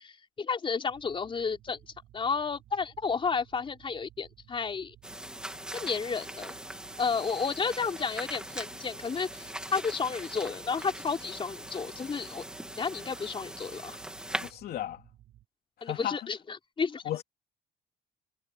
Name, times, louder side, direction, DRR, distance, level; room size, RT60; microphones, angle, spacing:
voice 1, 0.0-1.8 2.1-4.9 5.7-6.5 7.0-12.4 12.8-14.0 15.8-17.0, left 5 dB, 30° left, 4.2 m, -32 dB
sound 1, 0.9-15.5, right 13 dB, 70° right, 7.6 m, -58 dB
sound 2, 5.0-14.5, right 1 dB, 5° right, 3.1 m, -41 dB
voice 2, 14.4-15.0 15.8-16.2 17.0-17.2, left 12 dB, 65° left, 3.1 m, -34 dB
cardioid pair, 110°, 17 cm